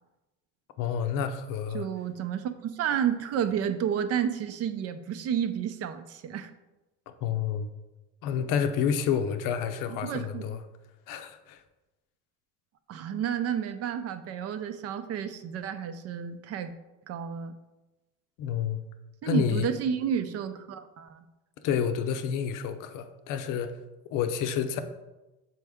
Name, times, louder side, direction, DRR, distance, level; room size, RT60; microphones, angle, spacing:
voice 1, 0.8-1.9 7.2-7.7 8.2-10.6 11.1-11.6 18.4-18.8 19.2-19.7 21.6-23.8 24.1-24.8, left 7 dB, 85° left, 8 dB, 0.7 m, -29 dB
voice 2, 1.7-6.5 9.9-10.5 12.9-16.7 17.1-17.5 19.2-21.2, right 8 dB, 50° right, 10 dB, 0.5 m, -31 dB
6.2 x 4.5 x 3.5 m, 1.0 s
cardioid pair, 135°, 31 cm